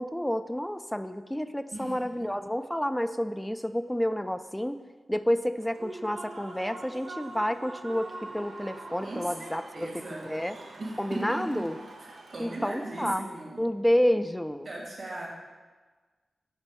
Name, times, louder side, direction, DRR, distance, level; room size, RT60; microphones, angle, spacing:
voice 1, 0.0-4.8 5.1-10.6 11.0-11.8 12.4-13.3 13.6-14.7, equal, 5° left, 10 dB, 0.4 m, -29 dB
voice 2, 1.7-2.3 9.0-10.3 10.8-11.6 12.0-13.6 14.6-15.3, right 2 dB, 65° right, -3 dB, 2.6 m, -38 dB
Human voice / Cheering / Applause, 5.6-13.2, right 2 dB, 85° right, 0.9 m, -44 dB
7.2 x 4.4 x 6.7 m, 1.3 s
cardioid pair, 50°, 0 cm